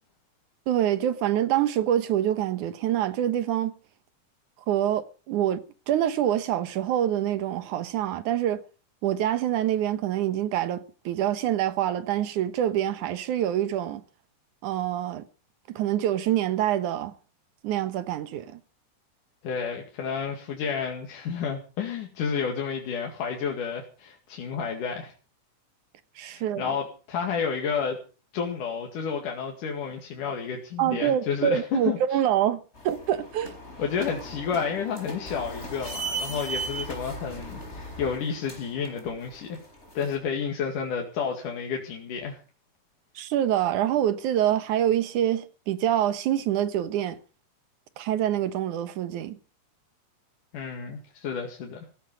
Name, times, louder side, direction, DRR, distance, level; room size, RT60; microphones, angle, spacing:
voice 1, 0.7-3.7 4.7-8.6 9.0-14.0 14.6-15.3 15.7-17.1 17.6-18.6 26.2-26.7 30.8-33.5 43.2-47.2 48.0-49.4, right 11 dB, 80° right, 2.7 m, -26 dB
voice 2, 19.4-25.1 26.3-28.0 28.3-32.0 33.8-39.6 40.0-42.4 50.5-51.9, left 6 dB, 85° left, 3.8 m, -31 dB
sound 1, 32.8-40.1, right 2 dB, 20° left, 4.8 m, -37 dB
16.5 x 13.0 x 5.3 m
omnidirectional pair, 3.5 m